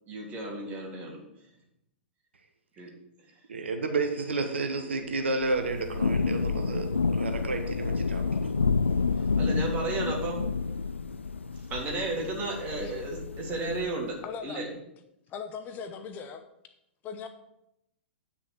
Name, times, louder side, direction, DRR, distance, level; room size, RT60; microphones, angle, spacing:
voice 1, 0.1-1.2 2.8-2.9 9.4-10.4 11.7-14.2 14.4-14.7, right 2 dB, 25° right, -1 dB, 3.3 m, -33 dB
voice 2, 3.5-8.5, right 3 dB, 70° right, 6 dB, 1.3 m, -31 dB
Thunder / Rain, 5.4-14.0, left 4 dB, 80° left, 0.4 m, -29 dB
voice 3, 14.2-14.7 15.3-16.4 17.0-17.3, left 6 dB, 30° left, 8 dB, 0.9 m, -39 dB
9.9 x 6.2 x 6.1 m, 0.83 s
figure-of-eight pair, 105°, 6 cm